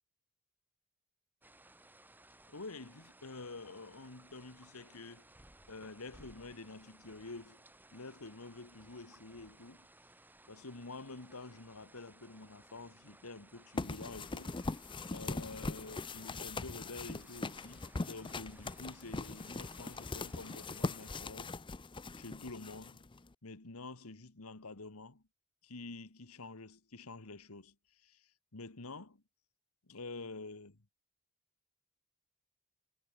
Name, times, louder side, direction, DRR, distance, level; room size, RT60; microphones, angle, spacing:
sound 1, 1.4-21.2, right 1 dB, 10° right, 1.6 m, -61 dB
voice 1, 2.5-5.3 5.7-7.6 7.9-9.9 10.5-14.6 15.1-21.5 22.1-23.1 23.4-25.2 25.6-29.2 29.8-30.9, left 3 dB, 75° left, 1.7 m, -48 dB
sound 2, 13.8-23.3, left 3 dB, 20° left, 0.6 m, -41 dB
head